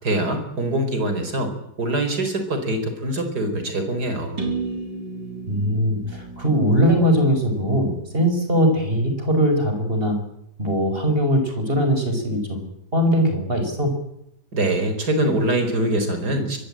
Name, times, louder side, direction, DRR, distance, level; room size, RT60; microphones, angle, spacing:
voice 1, 0.0-1.5 1.8-4.4 14.5-16.6, right 1 dB, 65° right, 7 dB, 4.9 m, -23 dB
sound 1, 4.4-8.2, right 4 dB, 85° right, 5.3 m, -33 dB
voice 2, 5.5-10.2 10.6-12.6 12.9-13.9, equal, 30° right, 6 dB, 5.5 m, -20 dB
24.5 x 20.5 x 8.9 m, 0.79 s
omnidirectional pair, 1.8 m